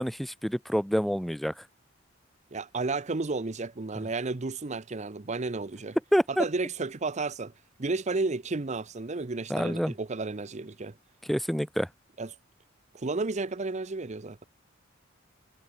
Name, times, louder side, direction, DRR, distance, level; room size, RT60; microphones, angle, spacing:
voice 1, 0.0-1.6 6.1-6.4 9.5-9.9 11.3-11.9, equal, ahead, 0.9 m, -27 dB
voice 2, 2.5-6.0 6.3-7.5 7.8-11.0 12.2-12.3 12.9-14.4, right 3 dB, 35° right, 0.7 m, -32 dB
head